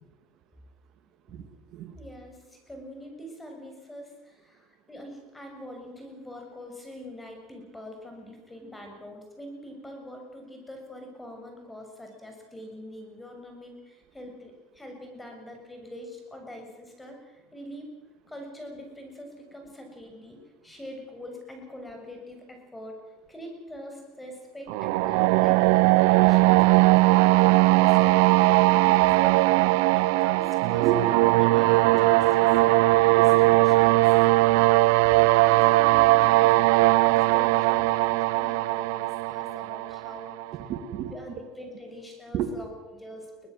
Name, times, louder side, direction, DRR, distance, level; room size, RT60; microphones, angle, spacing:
voice 1, 1.3-1.9 30.8-31.2 31.9-32.0 33.2-33.6 40.7-41.1 42.3-42.5, right 9 dB, 50° right, 6 dB, 2.7 m, -31 dB
voice 2, 1.9-17.2 17.5-18.0 18.3-26.6 27.0-34.1 35.4-36.7 37.0-40.4 41.1-43.5, equal, 10° left, 3 dB, 6.7 m, -43 dB
sound 1, 24.7-40.5, right 20 dB, 75° right, 0.6 m, -20 dB
23.0 x 19.5 x 7.7 m, 1.1 s
supercardioid pair, 125°, 0 cm